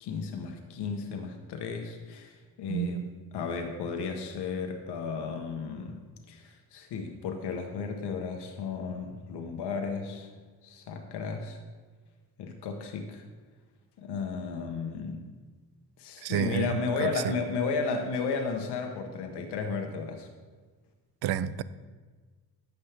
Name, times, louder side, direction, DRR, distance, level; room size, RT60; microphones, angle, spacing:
voice 1, 0.0-3.0 3.3-6.0 6.3-10.3 10.6-11.6 12.4-13.2 14.0-15.2 16.0-20.3, left 5 dB, 90° left, 1.1 m, -34 dB
voice 2, 2.7-3.1 16.2-16.7 17.0-17.1 21.2-21.6, right 10 dB, 75° right, 0.5 m, -29 dB
11.5 x 7.9 x 3.4 m
cardioid pair, 130°, 39 cm